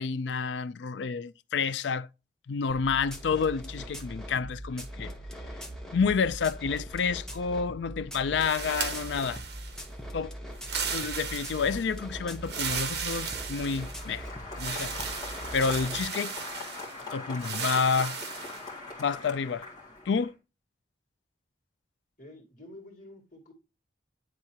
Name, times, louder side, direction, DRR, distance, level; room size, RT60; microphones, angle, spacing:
voice 1, 0.0-2.1 2.5-5.1 5.9-9.4 10.1-10.3 10.9-14.3 14.5-14.9 15.2-16.3 17.1-18.2 19.0-19.7 20.1-20.3, left 5 dB, 80° left, 0.4 m, -29 dB
sound 1, 2.7-16.0, equal, 5° left, 1.0 m, -41 dB
sound 2, 8.4-9.9 10.6-11.9 12.4-14.1 14.6-17.0 17.4-18.7, right 6 dB, 65° right, 1.4 m, -36 dB
Applause, 13.4-20.3, left 3 dB, 25° left, 2.2 m, -42 dB
voice 2, 22.2-23.5, left 1 dB, 50° left, 2.5 m, -49 dB
10.5 x 3.7 x 2.8 m
head